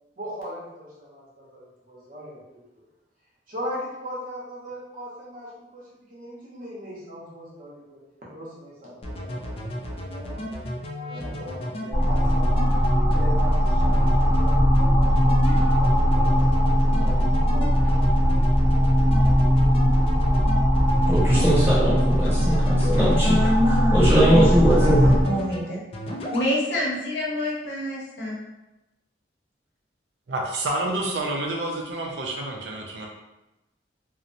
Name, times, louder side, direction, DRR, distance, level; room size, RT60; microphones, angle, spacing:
voice 1, 0.2-2.4 2.8-2.9 3.5-8.0 8.3-10.4 11.0-12.7 13.1-18.0, equal, 45° right, -6 dB, 0.8 m, -39 dB
sound 1, 9.0-23.4 23.7-24.4 24.7-25.6 25.9-26.5, left 1 dB, 30° left, 0.3 m, -33 dB
sound 2, 11.9-25.2, equal, 10° left, 0.7 m, -20 dB
voice 2, 21.1-23.3 23.9-25.1, right 1 dB, 15° right, -10 dB, 1.0 m, -20 dB
voice 3, 23.2-25.8 26.3-28.4, left 1 dB, 70° left, -4 dB, 0.7 m, -27 dB
voice 4, 30.3-33.1, right 2 dB, 70° right, 0 dB, 0.4 m, -28 dB
2.8 x 2.0 x 2.5 m, 0.98 s
head